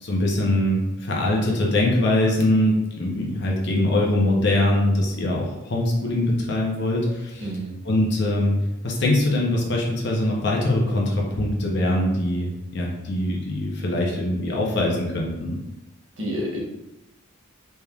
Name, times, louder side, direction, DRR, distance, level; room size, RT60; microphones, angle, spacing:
voice 1, 0.0-7.4 7.8-15.6, left 1 dB, 55° left, -2 dB, 0.7 m, -22 dB
voice 2, 7.4-7.7 16.2-16.6, equal, 65° right, -3 dB, 1.1 m, -29 dB
4.2 x 3.4 x 2.3 m, 0.96 s
head